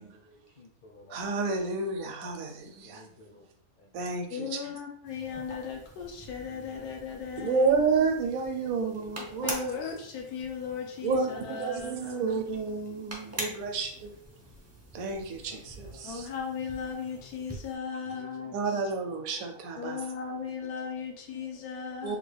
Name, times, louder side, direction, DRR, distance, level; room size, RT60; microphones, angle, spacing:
voice 1, 0.0-1.3 2.9-3.5 3.8-3.9 5.2-5.6 6.5-6.9 7.3-7.6 8.6-9.2 9.5-9.8 11.1-11.9 12.2-13.8 15.5-16.1 17.3-17.4 18.1-18.9 19.3-19.5 20.7-20.8, left 2 dB, 50° left, 0.6 m, -53 dB
voice 2, 1.1-3.0 3.9-4.5 7.4-9.7 11.0-14.1 14.9-16.2 18.5-20.0 22.0-22.2, right 4 dB, 75° right, 1.0 m, -30 dB
voice 3, 4.3-7.8 9.3-12.3 13.1-13.2 16.0-18.8 19.8-22.2, left 6 dB, 90° left, 1.1 m, -37 dB
sound 1, 5.0-17.8, right 1 dB, 25° right, 0.3 m, -44 dB
3.5 x 2.3 x 3.2 m
omnidirectional pair, 1.5 m